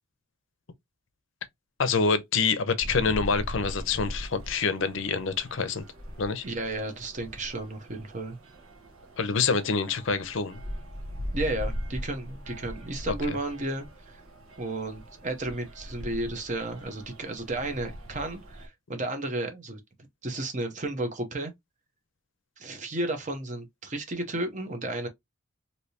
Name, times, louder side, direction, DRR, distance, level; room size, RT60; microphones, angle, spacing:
voice 1, 1.8-5.8 6.2-6.4 9.2-10.6 13.3-13.4, left 5 dB, 60° left, 0.5 m, -26 dB
sound 1, 2.8-18.7, equal, 85° right, 1.0 m, -40 dB
voice 2, 6.4-8.4 11.3-14.2 14.6-19.8 20.2-21.5 22.6-25.1, right 2 dB, 35° right, 0.7 m, -33 dB
3.2 x 2.7 x 2.7 m
head